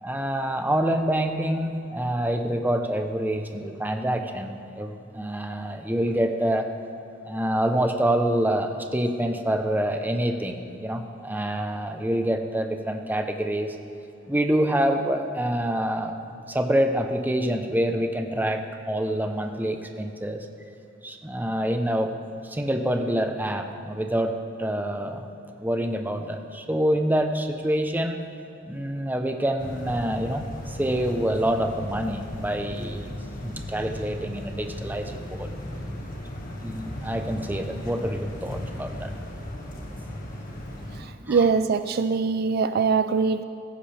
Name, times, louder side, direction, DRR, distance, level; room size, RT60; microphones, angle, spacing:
voice 1, 0.0-6.7 7.2-13.8 14.3-16.2 16.5-20.5 21.0-22.2 22.4-25.3 25.6-28.2 28.7-33.1 33.4-35.5 36.6-39.1 41.2-41.4, right 1 dB, 10° right, 5 dB, 0.8 m, -26 dB
sound 1, 29.6-41.0, left 1 dB, 45° left, 1.8 m, -36 dB
voice 2, 40.9-43.4, right 5 dB, 55° right, 11 dB, 0.4 m, -23 dB
16.0 x 15.0 x 3.5 m, 2.7 s
head